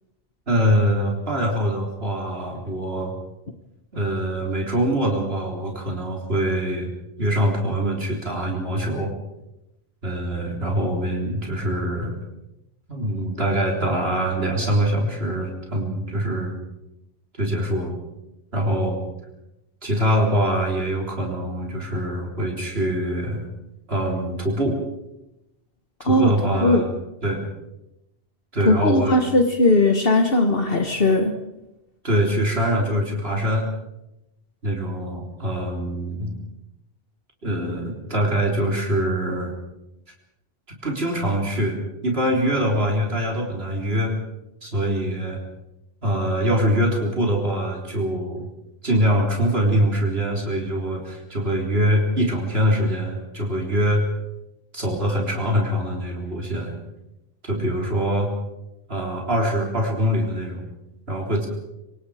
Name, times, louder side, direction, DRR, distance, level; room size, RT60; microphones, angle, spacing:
voice 1, 0.5-3.1 3.9-6.9 7.2-9.1 10.0-12.2 12.9-16.6 17.4-17.9 18.5-19.0 19.8-23.5 23.9-24.8 26.1-26.9 27.2-27.5 28.5-29.2 32.0-33.7 34.6-36.3 37.4-39.5 40.8-44.2 44.6-45.4 46.0-48.5 48.8-54.0 54.7-56.7 57.4-58.3 58.9-60.6 61.1-61.5, equal, 75° right, 0 dB, 4.0 m, -23 dB
voice 2, 28.6-31.3, left 1 dB, 65° left, 5 dB, 1.7 m, -18 dB
26.0 x 25.5 x 5.0 m, 0.91 s
omnidirectional pair, 1.1 m